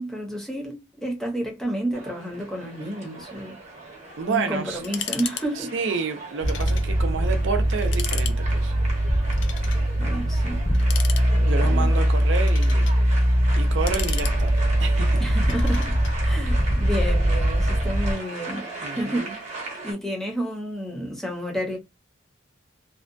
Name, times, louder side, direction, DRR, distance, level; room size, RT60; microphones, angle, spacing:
voice 1, 0.0-3.6 4.3-5.7 10.0-10.7 11.3-12.1 15.2-16.0 16.2-19.3 19.8-21.8, equal, ahead, 0.6 m, -30 dB
sound 1, 1.9-19.9, right 2 dB, 35° right, 0.8 m, -38 dB
voice 2, 4.2-4.8 5.6-8.7 11.4-12.9 13.6-15.2 18.8-19.4, right 5 dB, 80° right, 0.5 m, -30 dB
sound 2, 4.8-5.5 5.7-5.8 6.5-6.9 7.3-7.4 7.8-8.4 9.3-9.8 10.7-11.6 12.2-13.0 13.6-14.8 15.5-16.2, left 9 dB, 80° left, 0.4 m, -35 dB
sound 3, 6.4-18.1, equal, 50° left, 0.7 m, -21 dB
2.6 x 2.2 x 2.6 m
head